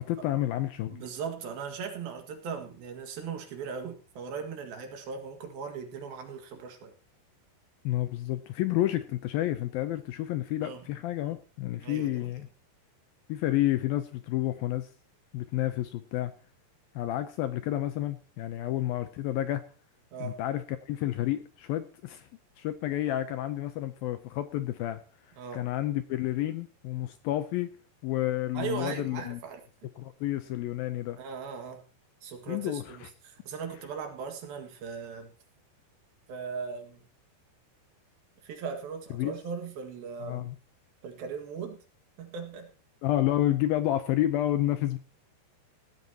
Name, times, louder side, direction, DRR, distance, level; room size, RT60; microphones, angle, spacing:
voice 1, 0.0-1.0 7.8-12.5 13.3-14.9 15.3-16.3 17.0-19.6 20.2-22.3 22.6-25.0 25.5-27.7 28.0-29.4 30.0-31.2 32.5-33.1 39.1-39.3 40.2-40.6 43.0-45.0, left 14 dB, 80° left, 10 dB, 2.2 m, -30 dB
voice 2, 0.9-6.9 10.6-10.8 11.8-12.2 20.1-20.4 25.4-25.7 28.5-29.6 31.2-31.9 32.2-35.3 36.3-37.0 38.4-40.5 41.0-41.8 42.2-42.7, right 6 dB, 65° right, 5 dB, 3.5 m, -38 dB
17.5 x 12.5 x 2.9 m, 0.35 s
omnidirectional pair, 4.9 m